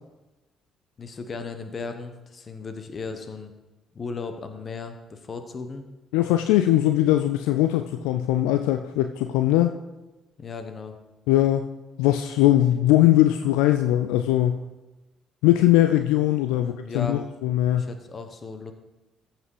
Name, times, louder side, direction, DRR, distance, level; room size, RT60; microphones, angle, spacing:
voice 1, 1.0-3.5 3.9-5.8 10.4-11.0 16.5-17.2 17.7-18.7, left 4 dB, 40° left, 8 dB, 1.3 m, -36 dB
voice 2, 6.1-9.7 11.3-11.7 12.0-14.6 15.4-17.9, left 14 dB, 70° left, 9 dB, 0.4 m, -20 dB
14.0 x 6.1 x 4.9 m, 1.1 s
figure-of-eight pair, 45°, 0 cm